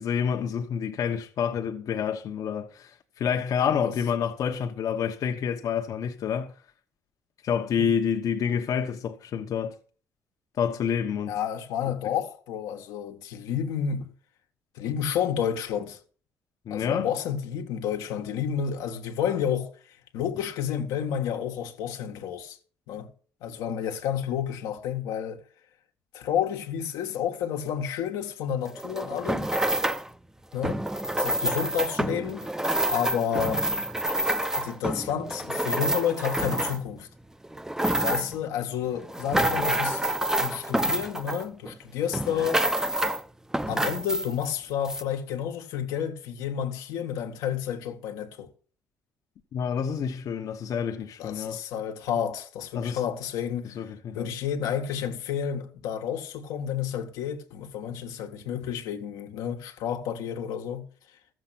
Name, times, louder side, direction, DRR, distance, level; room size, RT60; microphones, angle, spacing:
voice 1, 0.0-6.5 7.4-9.7 10.6-11.4 16.7-17.1 49.5-51.6 52.7-53.0 53.6-54.3, left 7 dB, 65° left, 1.1 m, -28 dB
voice 2, 11.3-14.1 14.7-16.0 16.7-19.7 20.1-22.6 22.9-23.1 23.4-25.4 26.1-29.5 30.5-30.8 31.2-32.5 32.9-33.7 34.6-37.1 38.0-40.1 40.4-42.7 43.7-48.5 51.2-53.8 54.1-60.9, left 8 dB, 85° left, 1.4 m, -30 dB
sound 1, 28.7-30.1 30.6-37.0 37.4-38.4 38.9-41.8 42.1-43.2 43.5-44.5 44.9-45.0, right 1 dB, 10° right, 0.7 m, -28 dB
13.5 x 7.5 x 5.9 m
supercardioid pair, 75°, 6 cm